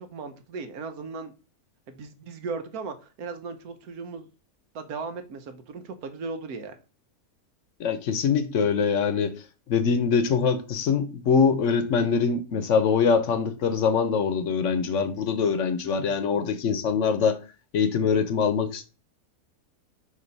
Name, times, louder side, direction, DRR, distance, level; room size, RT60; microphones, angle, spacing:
voice 1, 0.0-1.3 1.9-4.3 4.7-6.8, right 4 dB, 85° right, 1.4 m, -37 dB
voice 2, 7.8-9.4 9.7-17.4 17.7-18.8, left 6 dB, 60° left, 1.0 m, -23 dB
6.5 x 2.7 x 5.3 m
omnidirectional pair, 1.5 m